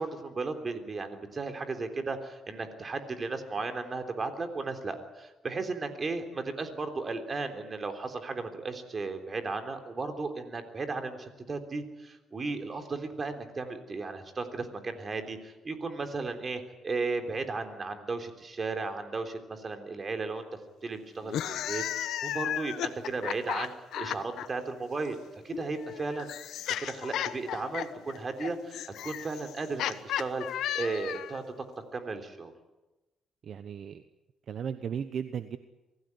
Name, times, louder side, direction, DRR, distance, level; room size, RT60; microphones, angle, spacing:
voice 1, 0.0-20.5 20.8-25.2 25.4-26.3 26.8-30.5 30.7-31.4 31.9-32.5, right 3 dB, 35° right, 7 dB, 3.5 m, -35 dB
sound 1, 21.2-24.5 25.5-31.4, left 11 dB, 80° left, 1.1 m, -34 dB
voice 2, 33.4-34.0 34.5-35.6, right 7 dB, 60° right, 11 dB, 1.0 m, -35 dB
24.0 x 16.0 x 9.7 m, 1.1 s
cardioid pair, 90°, 0 cm